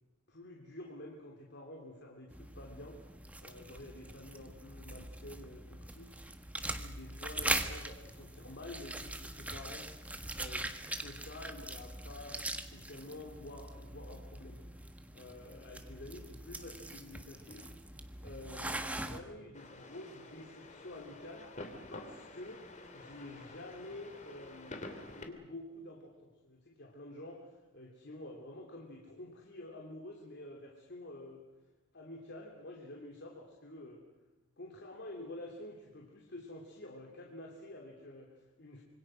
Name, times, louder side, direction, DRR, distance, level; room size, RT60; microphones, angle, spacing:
voice 1, 0.3-3.0 3.4-6.5 6.8-9.9 10.3-17.9 18.2-21.5 21.9-22.6 22.9-24.9 25.1-31.4 31.9-34.0 34.6-38.8, left 1 dB, 60° left, 1 dB, 3.1 m, -49 dB
sound 1, 2.3-19.2, right 1 dB, 5° right, 1.5 m, -42 dB
sound 2, 19.5-25.2, left 2 dB, 35° left, 2.7 m, -49 dB
26.5 x 24.5 x 6.3 m, 1.1 s
head